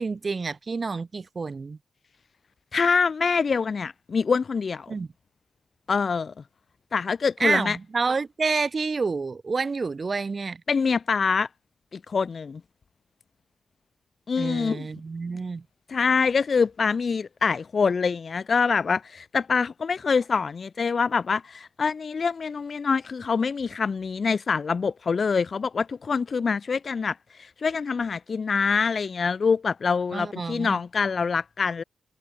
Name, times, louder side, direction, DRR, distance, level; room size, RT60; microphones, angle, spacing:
voice 1, 0.0-1.8 4.9-5.1 7.4-10.6 14.4-15.6 30.1-30.8, right 4 dB, 45° right, 4.2 m, -28 dB
voice 2, 2.7-4.9 5.9-6.3 6.9-7.8 10.7-11.5 11.9-12.6 14.3-14.9 15.9-31.8, left 5 dB, 55° left, 3.5 m, -25 dB
supercardioid pair, 50°, 0 cm